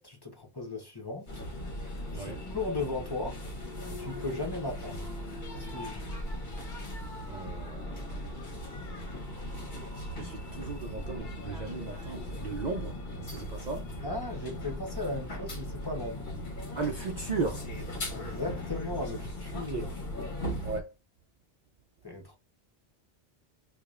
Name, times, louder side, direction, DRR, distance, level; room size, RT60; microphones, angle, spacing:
voice 1, 0.0-1.4 2.1-3.4 3.9-5.1 5.5-6.0 14.0-16.4 18.1-19.9 22.0-22.4, left 2 dB, 25° left, 1.0 m, -37 dB
sound 1, 1.3-20.8, left 1 dB, 50° left, 1.2 m, -38 dB
voice 2, 7.3-8.2 10.2-13.9 16.7-17.6 19.7-19.8 20.6-20.9, right 4 dB, 50° right, 0.6 m, -36 dB
4.7 x 2.3 x 2.4 m
omnidirectional pair, 1.1 m